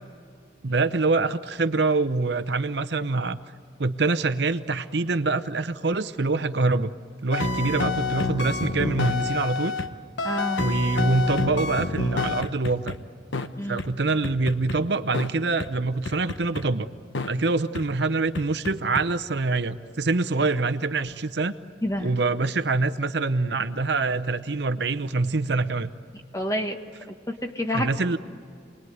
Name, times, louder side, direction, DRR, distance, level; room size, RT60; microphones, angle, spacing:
voice 1, 0.6-3.4 3.8-6.9 7.2-9.8 10.6-12.9 13.7-16.9 17.3-21.6 22.0-25.9 27.7-28.2, right 3 dB, 65° right, 12 dB, 0.8 m, -25 dB
sound 1, 7.3-9.9 10.2-13.0 13.3-13.5 13.8-13.9 14.2-14.8 15.1-15.3 15.6-15.7 16.1-16.6 17.1-17.3 17.7-17.8 18.3-19.0, left 3 dB, 80° left, 1.1 m, -28 dB
voice 2, 10.2-10.7 13.6-13.8 21.8-22.1 26.3-26.8 27.1-27.9, left 1 dB, 15° left, 4 dB, 1.5 m, -28 dB
28.0 x 20.5 x 9.4 m, 2.2 s
head